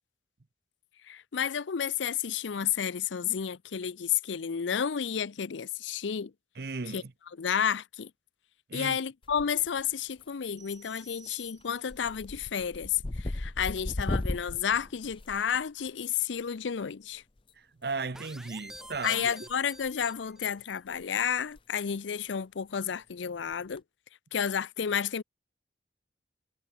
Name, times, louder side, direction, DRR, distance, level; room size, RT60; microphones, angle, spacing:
voice 1, 1.1-6.3 6.9-7.0 7.4-8.1 8.7-17.2 19.0-23.8 24.3-25.2, left 8 dB, 85° left, 0.5 m, -31 dB
voice 2, 6.6-7.1 8.7-9.0 17.6-19.3, right 4 dB, 55° right, 0.7 m, -36 dB
sound 1, 9.2-9.8 10.1-10.6 11.0-11.3 11.6-16.0 17.4-17.5 18.7-19.5 19.8-20.0 20.6-20.7 20.9-21.0 21.4-21.6 21.9-22.0 23.5-23.8, left 1 dB, 30° left, 0.6 m, -36 dB
sound 2, 10.6-12.1, right 7 dB, 20° right, 7.0 m, -57 dB
sound 3, 18.1-20.6, right 1 dB, 5° right, 1.4 m, -48 dB
head